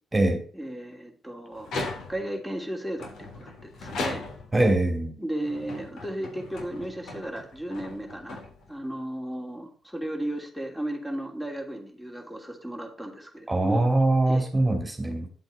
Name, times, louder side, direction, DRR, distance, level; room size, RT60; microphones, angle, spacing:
voice 1, 0.5-1.8 2.1-4.3 5.2-8.4 8.7-13.9 14.3-14.5, right 1 dB, 5° left, 3 dB, 3.0 m, -35 dB
sound 1, 1.6-2.4 3.0-4.7 5.3-8.9, left 2 dB, 70° left, 3.4 m, -37 dB
voice 2, 4.5-5.1 13.5-15.3, right 2 dB, 15° right, 3 dB, 3.1 m, -22 dB
10.5 x 8.0 x 4.2 m, 0.43 s
cardioid pair, 90°, 0 cm